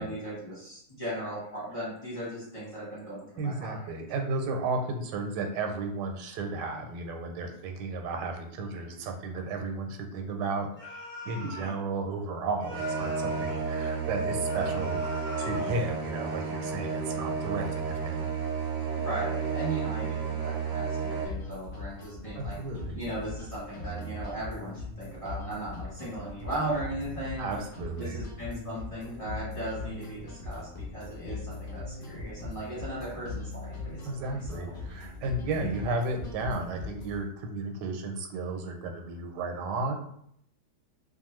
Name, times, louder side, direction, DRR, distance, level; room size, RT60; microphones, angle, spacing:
voice 1, 0.0-3.9 11.4-11.5 19.0-22.6 22.9-27.6 28.0-34.7, right 1 dB, 25° left, -8 dB, 1.0 m, -37 dB
voice 2, 3.4-10.7 11.2-18.3 22.3-23.0 27.4-28.2 34.0-39.9, right 3 dB, 90° right, 4 dB, 1.2 m, -33 dB
sound 1, 10.8-11.8 12.6-13.7 14.4-15.8, left 2 dB, 45° left, 0.9 m, -42 dB
sound 2, 12.7-21.2, right 5 dB, 70° right, 0.8 m, -31 dB
sound 3, 21.3-37.3, left 2 dB, 70° left, 0.5 m, -40 dB
2.5 x 2.4 x 3.0 m, 0.70 s
omnidirectional pair, 1.8 m